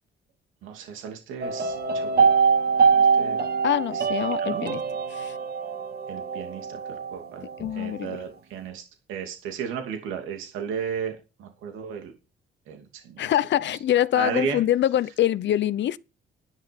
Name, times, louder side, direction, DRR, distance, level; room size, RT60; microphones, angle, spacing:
voice 1, 0.6-2.2 2.9-3.4 4.4-4.6 6.1-7.5 7.7-8.8 9.1-12.1 12.7-13.3 14.1-14.6, right 7 dB, 90° right, 2.7 m, -34 dB
sound 1, 1.4-7.7 8.0-8.1, right 5 dB, 55° right, 2.0 m, -23 dB
voice 2, 3.6-4.8 5.1-5.4 7.6-8.2 13.2-16.0, left 12 dB, 65° left, 0.8 m, -24 dB
11.5 x 10.0 x 5.3 m
cardioid pair, 90°, 20 cm